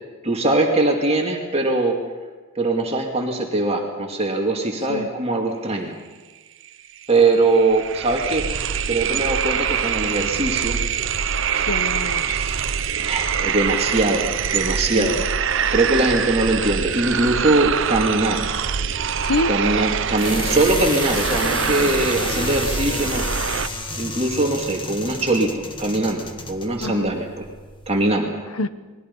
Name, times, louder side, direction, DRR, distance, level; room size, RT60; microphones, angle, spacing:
voice 1, 0.2-2.0 2.5-5.9 7.1-8.5 8.9-10.8 12.3-12.5 13.0-15.2 15.7-18.4 19.5-23.3 24.0-27.3 27.9-28.4, right 2 dB, 30° right, 1 dB, 2.5 m, -21 dB
sound 1, 6.7-6.8 7.0-23.7, right 7 dB, 60° right, 0.8 m, -24 dB
voice 2, 11.6-12.4 14.9-15.2 19.2-19.5 26.8-27.1 28.5-28.7, left 2 dB, 90° left, 12 dB, 1.1 m, -26 dB
sound 2, 18.0-28.1, left 2 dB, 25° left, 1.8 m, -32 dB
29.5 x 21.5 x 5.5 m, 1.3 s
head